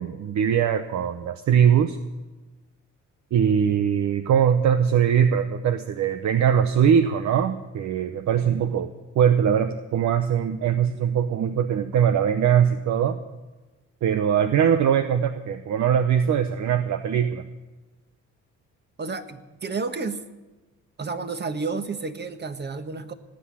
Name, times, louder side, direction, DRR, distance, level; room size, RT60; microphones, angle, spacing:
voice 1, 0.0-2.0 3.3-13.2 14.0-17.4, right 8 dB, 70° right, 9 dB, 0.9 m, -21 dB
voice 2, 19.0-20.2 21.0-23.1, right 4 dB, 35° right, 9 dB, 1.4 m, -31 dB
18.0 x 7.7 x 8.5 m, 1.2 s
cardioid pair, 90°, 30 cm